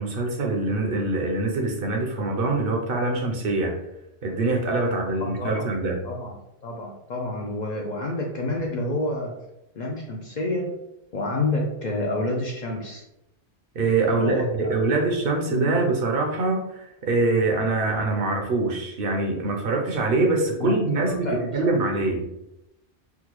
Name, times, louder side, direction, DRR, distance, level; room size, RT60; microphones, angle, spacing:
voice 1, 0.0-3.7 4.2-6.0 13.8-22.3, right 3 dB, 60° right, 1 dB, 0.8 m, -24 dB
voice 2, 5.2-5.6 6.0-6.4 6.6-9.4 9.8-10.8 11.1-13.0 14.1-15.0 15.5-15.8 20.6-21.7, left 2 dB, 55° left, -1 dB, 0.5 m, -29 dB
3.5 x 2.2 x 3.0 m, 0.86 s
omnidirectional pair, 1.1 m